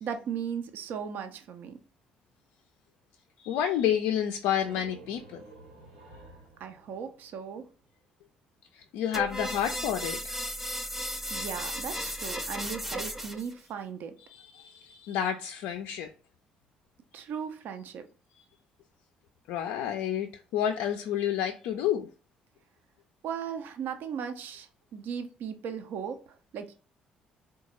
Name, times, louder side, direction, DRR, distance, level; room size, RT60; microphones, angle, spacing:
voice 1, 0.0-1.8 6.6-7.7 11.3-14.1 17.1-18.1 23.2-26.7, right 7 dB, 65° right, 0.4 m, -37 dB
voice 2, 3.4-5.4 8.7-10.4 14.3-16.1 18.3-18.4 19.5-22.1, left 10 dB, 75° left, 0.3 m, -30 dB
sound 1, 4.2-7.9, right 2 dB, 85° right, 1.2 m, -52 dB
sound 2, 9.1-13.5, equal, 5° right, 0.6 m, -35 dB
3.8 x 2.2 x 2.9 m
hypercardioid pair, 50°, 4 cm